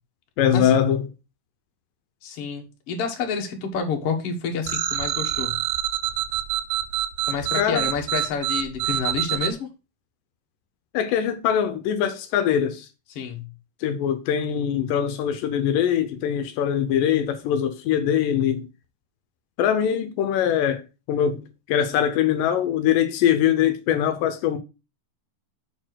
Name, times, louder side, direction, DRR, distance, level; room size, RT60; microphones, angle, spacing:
voice 1, 0.4-1.0 7.6-7.9 10.9-12.9 13.8-18.7 19.6-24.6, left 9 dB, 80° left, 2.3 m, -22 dB
voice 2, 2.2-5.6 7.3-9.7 13.1-13.4, left 5 dB, 50° left, 2.1 m, -29 dB
sound 1, 4.7-9.5, right 12 dB, 75° right, 2.2 m, -26 dB
6.8 x 4.4 x 6.1 m
omnidirectional pair, 3.9 m